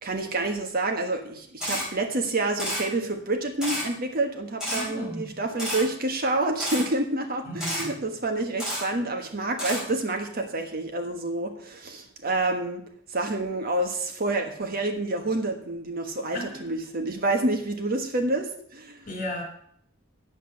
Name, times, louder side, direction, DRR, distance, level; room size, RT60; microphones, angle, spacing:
voice 1, 0.0-12.8 13.1-19.1, right 2 dB, 45° right, 4 dB, 1.4 m, -28 dB
Camera, 1.6-1.8 2.6-2.8 3.6-3.8 4.6-4.8 5.6-5.8 6.6-6.8 7.6-7.8 8.6-8.8 9.6-9.8, equal, 5° right, 4.9 m, -29 dB
voice 2, 4.7-5.3 7.4-7.9 16.3-16.8 19.1-19.4, left 1 dB, 40° left, 0 dB, 3.8 m, -35 dB
9.2 x 7.9 x 6.4 m, 0.63 s
head